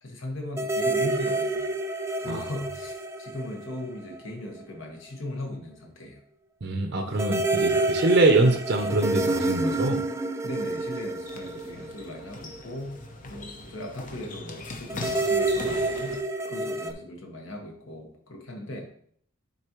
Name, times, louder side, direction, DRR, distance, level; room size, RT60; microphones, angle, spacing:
voice 1, 0.0-1.6 2.2-6.2 10.4-13.0 13.3-16.2 16.5-18.9, left 1 dB, 65° left, 1 dB, 1.5 m, -38 dB
sound 1, 0.6-4.3 4.6-4.7 7.2-12.6 14.9-16.9, right 2 dB, 15° right, 0.3 m, -28 dB
voice 2, 6.6-10.0, right 2 dB, 55° right, 3 dB, 0.7 m, -23 dB
sound 2, 10.6-16.2, left 2 dB, 40° left, 0.8 m, -41 dB
9.9 x 4.1 x 3.1 m, 0.62 s
head